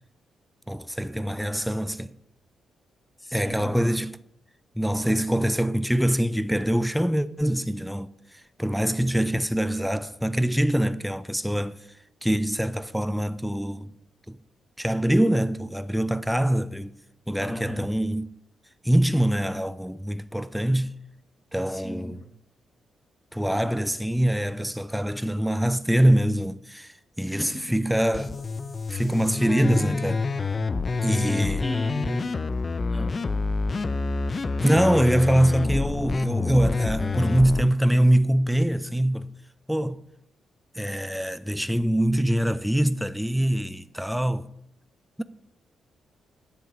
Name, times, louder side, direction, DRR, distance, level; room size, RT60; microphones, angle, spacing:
voice 1, 0.7-2.1 3.3-4.2 4.8-11.8 12.2-13.9 14.3-14.4 14.8-16.9 17.3-18.3 18.8-20.9 21.5-22.2 23.3-28.4 28.9-30.2 31.0-31.7 34.6-39.3 39.7-40.0 40.7-44.5 45.2-45.3, right 1 dB, 5° right, 0.5 m, -24 dB
voice 2, 3.2-3.9 17.4-17.9 21.7-22.3 27.2-27.9 31.1-32.5 32.9-33.2, left 1 dB, 15° left, 1.5 m, -37 dB
sound 1, 28.1-37.6, left 3 dB, 40° left, 0.6 m, -27 dB
10.0 x 7.7 x 5.1 m
hypercardioid pair, 45°, 0 cm